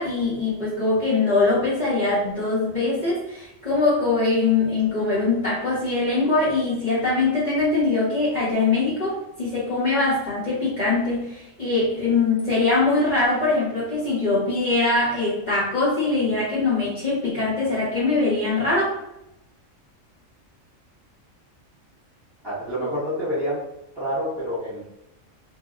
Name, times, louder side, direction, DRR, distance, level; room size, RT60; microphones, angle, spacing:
voice 1, 0.0-19.0, left 3 dB, 35° left, -11 dB, 1.2 m, -22 dB
voice 2, 22.4-23.6 23.9-24.9, equal, 20° right, -11 dB, 1.5 m, -27 dB
2.9 x 2.8 x 2.4 m, 0.84 s
omnidirectional pair, 1.3 m